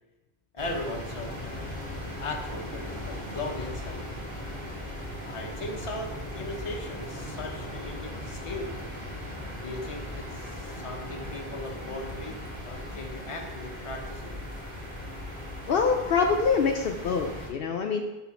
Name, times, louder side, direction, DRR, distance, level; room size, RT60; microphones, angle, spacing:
voice 1, 0.5-1.7 2.2-4.1 5.2-8.7 9.6-12.4 12.7-14.4, left 2 dB, 35° left, 1 dB, 0.8 m, -38 dB
sound 1, 0.6-17.5, left 1 dB, 30° right, 2.0 m, -38 dB
voice 2, 15.7-18.0, left 5 dB, 70° left, 3 dB, 0.7 m, -25 dB
5.9 x 3.8 x 5.8 m, 1.0 s
omnidirectional pair, 1.0 m